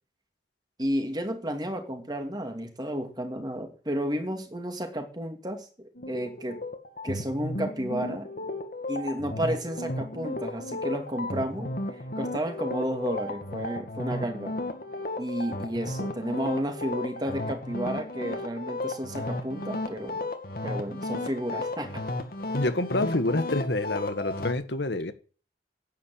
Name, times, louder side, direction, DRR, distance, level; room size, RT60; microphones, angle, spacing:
voice 1, 0.8-6.6 7.0-8.3 8.9-14.5 15.2-20.2 20.6-22.0, equal, 25° right, 2.5 m, -32 dB
sound 1, 6.0-24.5, left 2 dB, 55° left, 2.1 m, -34 dB
voice 2, 22.5-25.1, left 2 dB, 80° left, 1.5 m, -27 dB
10.5 x 8.8 x 8.7 m
head